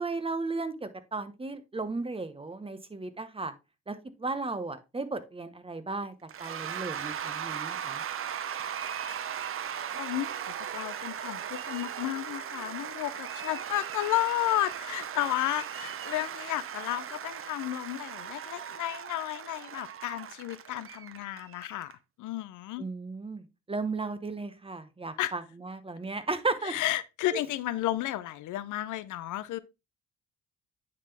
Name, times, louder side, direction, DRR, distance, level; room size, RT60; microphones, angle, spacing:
voice 1, 0.0-3.5 3.9-8.0 22.8-26.7 27.3-27.4, right 3 dB, 20° right, 0.9 m, -35 dB
Cheering / Applause / Crowd, 6.3-21.9, right 9 dB, 45° right, 0.7 m, -38 dB
voice 2, 9.9-21.9 22.2-22.8 25.2-25.3 26.6-29.6, left 15 dB, 80° left, 0.6 m, -32 dB
9.4 x 3.8 x 3.4 m
cardioid pair, 90°, 30 cm